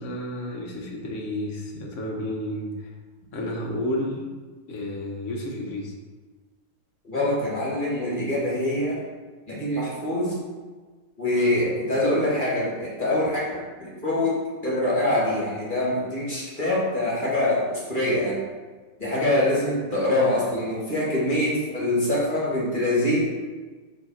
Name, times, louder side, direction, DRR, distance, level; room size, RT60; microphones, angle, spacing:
voice 1, 0.0-2.9 3.3-4.3 4.7-5.9 13.2-13.3, left 1 dB, 50° left, 0 dB, 1.1 m, -31 dB
voice 2, 7.0-9.0 9.5-10.3 11.2-18.4 19.0-23.2, left 1 dB, 30° left, -6 dB, 1.5 m, -24 dB
5.1 x 3.4 x 5.5 m, 1.4 s
omnidirectional pair, 2.0 m